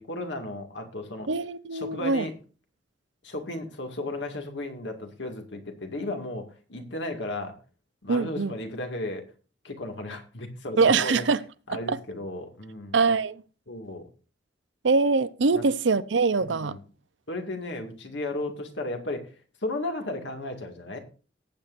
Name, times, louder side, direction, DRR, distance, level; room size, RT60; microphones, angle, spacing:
voice 1, 0.0-1.3 1.7-2.3 3.2-7.6 8.0-9.2 9.6-11.2 11.7-13.0 13.7-14.1 15.5-15.6 16.4-16.8 17.3-19.3 19.6-21.0, left 2 dB, 75° left, 2.1 m, -34 dB
voice 2, 1.3-2.3 8.1-8.5 10.8-11.4 11.7-12.0 12.9-13.4 14.8-16.8, right 4 dB, 80° right, 0.7 m, -23 dB
18.5 x 8.2 x 2.6 m
head